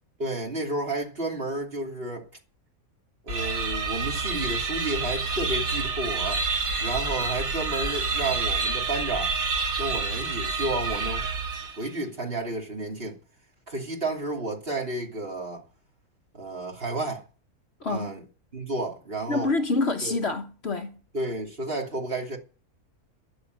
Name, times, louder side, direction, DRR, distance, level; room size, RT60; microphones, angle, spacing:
voice 1, 0.2-2.3 3.2-6.5 6.8-9.3 9.8-11.2 11.7-13.2 13.7-15.6 16.3-17.2 17.9-18.2 18.5-19.5 20.0-20.2 21.1-22.4, right 2 dB, 40° right, 3.1 m, -31 dB
sound 1, 3.3-12.0, right 4 dB, 70° right, 1.9 m, -28 dB
voice 2, 17.8-18.2 19.3-21.0, left 3 dB, 50° left, 1.2 m, -27 dB
13.0 x 6.9 x 9.4 m
omnidirectional pair, 1.5 m